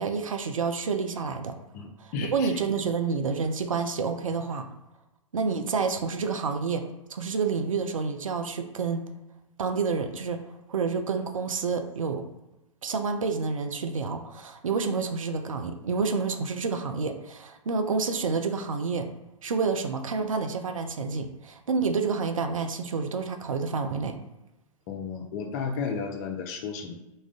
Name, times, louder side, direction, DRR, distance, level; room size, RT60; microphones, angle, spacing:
voice 1, 0.0-1.6 2.0-4.7 5.3-9.1 9.6-10.4 10.7-12.2 12.8-19.1 19.4-24.2, right 5 dB, 70° right, 6 dB, 0.4 m, -29 dB
voice 2, 1.7-2.6 24.9-26.9, left 5 dB, 30° left, 3 dB, 0.4 m, -33 dB
2.4 x 2.1 x 3.5 m, 0.99 s
figure-of-eight pair, 105°, 18 cm